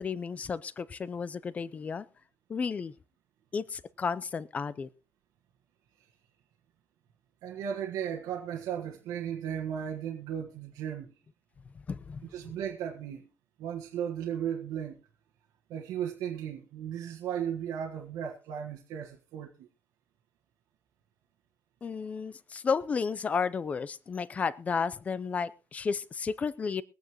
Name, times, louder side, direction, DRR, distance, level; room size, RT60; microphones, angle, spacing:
voice 1, 0.0-2.0 2.5-2.9 3.5-4.9 11.9-12.2 21.8-26.8, left 5 dB, 25° left, 0.5 m, -32 dB
voice 2, 7.4-11.1 12.3-13.3 13.6-15.0 15.7-19.7, right 9 dB, 85° right, 1.5 m, -35 dB
22.5 x 9.2 x 3.0 m
cardioid pair, 180°, 6 cm